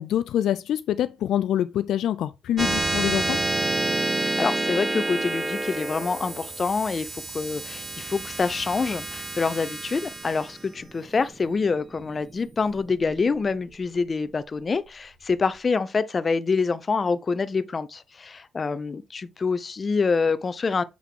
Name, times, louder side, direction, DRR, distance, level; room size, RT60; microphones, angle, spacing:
voice 1, 0.0-3.4, left 11 dB, 75° left, 0.3 m, -25 dB
sound 1, 2.6-13.4, right 2 dB, 20° right, 0.7 m, -29 dB
voice 2, 4.2-20.8, left 4 dB, 35° left, 0.6 m, -26 dB
7.4 x 3.6 x 3.6 m
cardioid pair, 90°, 0 cm